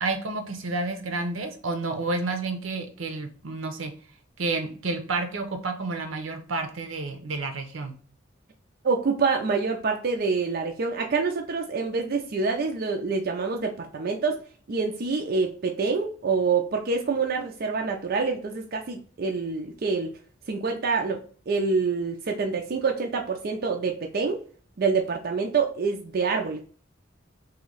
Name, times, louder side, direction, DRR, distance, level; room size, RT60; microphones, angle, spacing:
voice 1, 0.0-3.9 4.4-7.9, right 3 dB, 85° right, 6 dB, 0.7 m, -30 dB
voice 2, 8.8-14.4 14.7-20.2 20.5-24.4 24.8-26.6, right 4 dB, 50° right, 3 dB, 0.4 m, -26 dB
3.1 x 2.7 x 3.9 m, 0.43 s
head